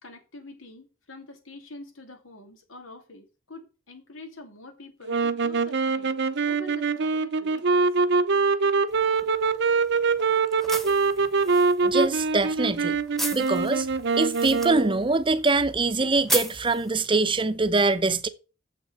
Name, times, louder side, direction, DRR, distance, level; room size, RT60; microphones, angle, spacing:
voice 1, 0.0-6.2 6.4-7.9 9.2-9.3, left 1 dB, 90° left, 2.9 m, -45 dB
sound 1, 5.1-15.0, right 4 dB, 60° right, 0.8 m, -24 dB
sound 2, 8.9-17.5, right 1 dB, ahead, 1.2 m, -37 dB
voice 2, 11.8-13.0 13.3-13.9 14.1-18.3, right 3 dB, 25° right, 0.7 m, -23 dB
7.6 x 6.2 x 7.7 m
head